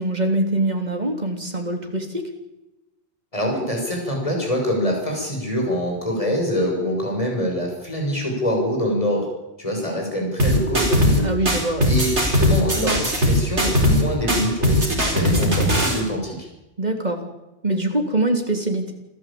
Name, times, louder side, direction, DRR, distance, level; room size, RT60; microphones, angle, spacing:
voice 1, 0.0-2.2 11.2-11.9 16.8-17.2 17.6-18.9, right 1 dB, 35° right, 4 dB, 3.6 m, -23 dB
voice 2, 3.3-9.3 9.6-11.6 11.9-16.3, equal, 30° left, 0 dB, 6.6 m, -24 dB
sound 1, 10.4-11.2 11.5-14.0 14.3-16.0, equal, 70° right, 5.2 m, -19 dB
28.0 x 14.0 x 8.8 m, 0.99 s
omnidirectional pair, 1.2 m